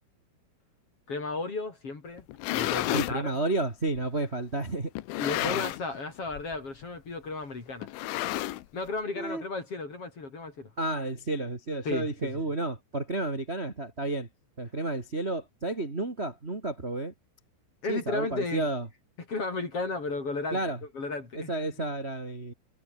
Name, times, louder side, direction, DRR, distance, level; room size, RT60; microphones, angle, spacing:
voice 1, 1.1-2.3 2.5-3.4 5.2-7.9 8.7-10.7 11.8-12.4 17.8-18.7 19.3-20.6 20.9-21.5, left 3 dB, 30° left, 4.3 m, -34 dB
sound 1, 2.2-3.2 4.0-4.1 5.0-6.0 6.3-6.6 6.8-6.9 7.8-8.9, left 16 dB, 80° left, 3.6 m, -31 dB
voice 2, 2.9-4.9 5.4-5.6 9.2-9.4 10.8-14.3 14.6-17.1 17.9-18.9 20.5-20.8 21.5-22.5, right 2 dB, 20° right, 2.1 m, -31 dB
omnidirectional pair, 5.4 m